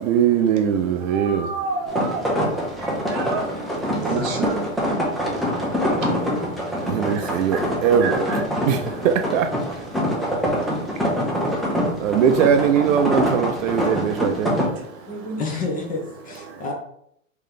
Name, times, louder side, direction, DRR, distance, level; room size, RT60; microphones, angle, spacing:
voice 1, 0.0-1.5 6.8-8.2 8.7-9.5 12.0-14.5, right 8 dB, 70° right, 0.6 m, -20 dB
voice 2, 1.1-2.2 3.1-3.4 3.9-4.6 7.1-7.2 7.5-7.6 8.0-8.4 13.9-14.0, right 4 dB, 40° right, 0.9 m, -29 dB
sound 1, 1.9-14.7, equal, ahead, 0.4 m, -25 dB
voice 3, 15.1-16.7, left 3 dB, 20° left, 0.9 m, -29 dB
3.2 x 3.0 x 3.8 m
hypercardioid pair, 125°, 41 cm